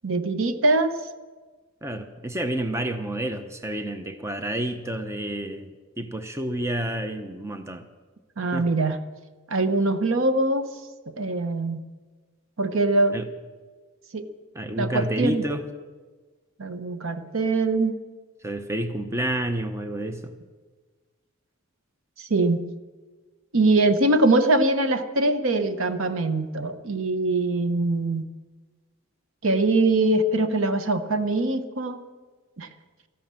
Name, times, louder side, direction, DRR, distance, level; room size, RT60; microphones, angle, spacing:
voice 1, 0.0-1.0 8.4-9.0 9.5-10.7 11.1-11.8 12.6-13.2 14.1-14.2 14.8-15.4 16.6-18.0 22.2-22.6 23.5-28.3 29.4-32.0 32.6-32.7, right 2 dB, 65° right, 10 dB, 0.9 m, -23 dB
voice 2, 1.8-7.8 8.5-8.7 13.1-13.3 14.5-15.6 18.4-20.3, right 1 dB, 15° right, 8 dB, 0.7 m, -29 dB
13.5 x 11.0 x 7.5 m, 1.4 s
head